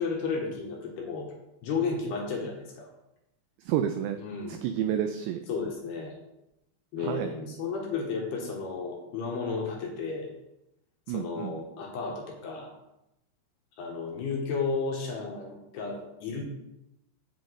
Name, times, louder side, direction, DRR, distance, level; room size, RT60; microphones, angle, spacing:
voice 1, 0.0-1.3 1.6-2.9 4.2-4.6 5.5-6.2 6.9-10.3 11.1-12.7 13.8-16.4, left 4 dB, 65° left, 0 dB, 3.1 m, -33 dB
voice 2, 3.7-4.2 4.5-5.4 7.0-7.3 11.1-11.6, right 10 dB, 90° right, 7 dB, 2.5 m, -30 dB
8.2 x 6.2 x 8.1 m, 0.89 s
omnidirectional pair, 5.8 m